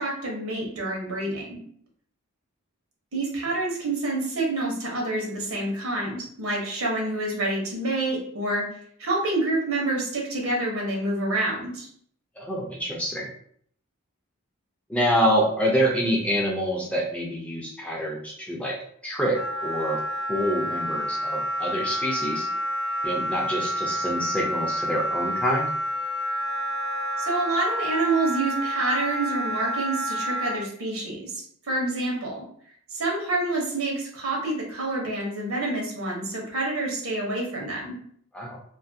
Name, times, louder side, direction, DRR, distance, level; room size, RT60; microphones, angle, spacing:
voice 1, 0.0-1.6 3.1-8.6 9.0-11.9 27.2-32.4 32.9-38.0, right 2 dB, 75° right, -2 dB, 1.0 m, -27 dB
voice 2, 12.4-13.3 14.9-18.8 19.0-20.0 20.3-22.5 23.0-25.7 38.3-38.6, equal, 5° left, -3 dB, 0.4 m, -26 dB
Wind instrument woodwind instrument, 19.3-30.6, equal, 65° left, 0.6 m, -29 dB
2.5 x 2.5 x 2.6 m, 0.62 s
head